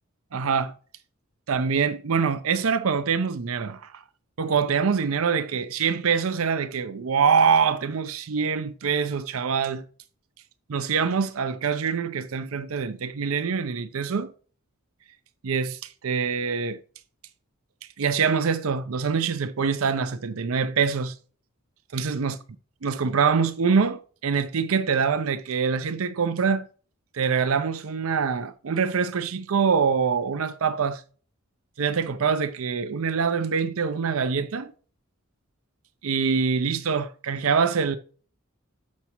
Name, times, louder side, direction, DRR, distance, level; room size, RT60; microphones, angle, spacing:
voice 1, 0.3-0.7 1.5-3.9 4.4-9.8 10.7-14.3 15.4-16.8 18.0-21.2 21.9-22.4 22.8-26.6 27.1-31.0 31.8-34.7 36.0-38.0, right 6 dB, 85° right, 0.6 m, -24 dB
8.3 x 5.9 x 2.9 m
head